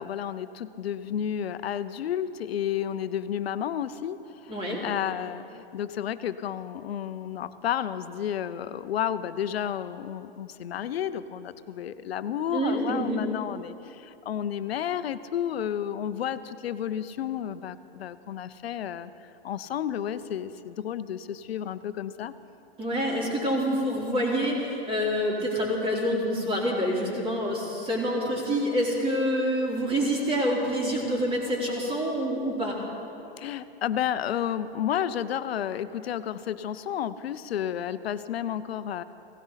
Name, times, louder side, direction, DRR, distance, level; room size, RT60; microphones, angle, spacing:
voice 1, 0.0-22.3 33.4-39.0, left 9 dB, 80° left, 13 dB, 0.7 m, -31 dB
voice 2, 4.5-4.8 12.5-13.2 22.8-32.8, equal, 20° right, -3 dB, 3.7 m, -27 dB
17.0 x 16.0 x 4.1 m, 2.8 s
hypercardioid pair, 115°, 30 cm